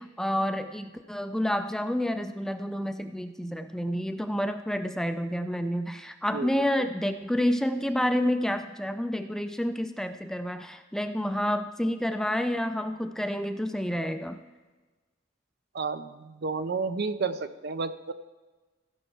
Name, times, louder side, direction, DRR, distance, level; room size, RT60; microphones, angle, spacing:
voice 1, 0.0-14.4, equal, 5° left, 8 dB, 0.4 m, -29 dB
voice 2, 6.3-6.7 15.7-18.1, right 4 dB, 60° right, 12 dB, 0.5 m, -31 dB
16.0 x 5.6 x 4.5 m, 1.3 s
head